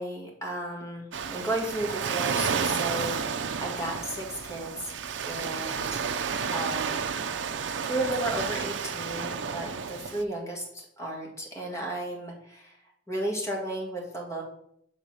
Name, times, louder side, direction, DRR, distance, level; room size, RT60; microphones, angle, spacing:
voice 1, 0.0-4.9 5.3-7.1 7.8-12.8 13.1-14.4, right 1 dB, 15° left, -2 dB, 1.7 m, -34 dB
Waves surf, 1.1-10.2, right 6 dB, 85° right, 0.5 m, -31 dB
6.8 x 3.9 x 6.2 m, 0.73 s
head